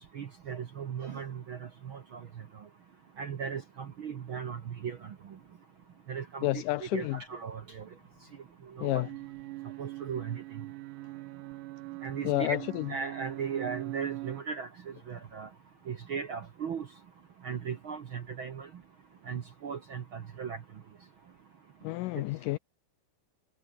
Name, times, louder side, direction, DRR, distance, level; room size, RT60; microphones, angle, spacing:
voice 1, 0.1-2.2 3.2-5.1 6.1-7.8 8.8-9.0 9.8-10.4 12.0-12.6 12.9-14.7 15.1-15.5 15.9-16.9 17.4-18.7 19.3-20.6, right 6 dB, 70° right, 1.2 m, -37 dB
voice 2, 6.4-7.2 8.8-9.1 12.2-12.9 21.8-22.6, left 19 dB, 85° left, 1.9 m, -30 dB
sound 1, 8.9-14.4, right 20 dB, 90° right, 1.8 m, -41 dB
omnidirectional pair, 4.3 m